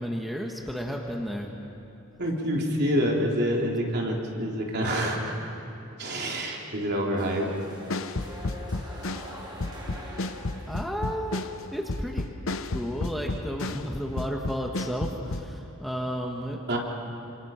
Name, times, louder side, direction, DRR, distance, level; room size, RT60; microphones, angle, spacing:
voice 1, 0.0-1.5 10.7-12.3 12.7-16.6, equal, ahead, 0 dB, 1.5 m, -32 dB
voice 2, 2.2-5.3 6.0-7.5 16.7-16.8, equal, 50° right, -1 dB, 3.7 m, -27 dB
sound 1, 7.2-11.0, equal, 20° right, 4.2 m, -43 dB
sound 2, 7.9-13.9 14.2-15.5, left 2 dB, 65° left, 0.9 m, -32 dB
27.0 x 27.0 x 5.9 m, 2.8 s
head